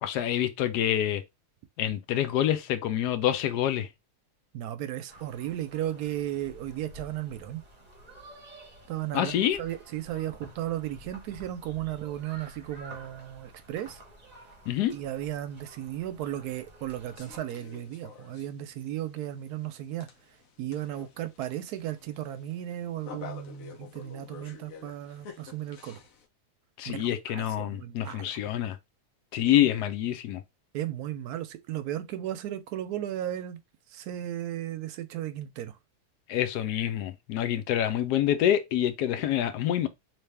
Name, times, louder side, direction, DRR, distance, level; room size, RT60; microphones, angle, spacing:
voice 1, 0.0-1.2 1.8-3.9 9.1-9.6 14.7-14.9 26.8-28.8 29.3-30.4 36.3-39.9, left 11 dB, 90° left, 1.2 m, -27 dB
voice 2, 4.5-7.6 8.9-14.0 14.9-20.1 20.6-26.0 26.9-28.4 29.5-29.7 30.7-33.6 33.9-35.8, right 12 dB, 75° right, 1.0 m, -35 dB
sound 1, 5.1-17.4, right 1 dB, 30° right, 1.0 m, -51 dB
sound 2, 17.2-26.3, left 6 dB, 65° left, 1.1 m, -49 dB
3.3 x 3.0 x 3.3 m
omnidirectional pair, 1.7 m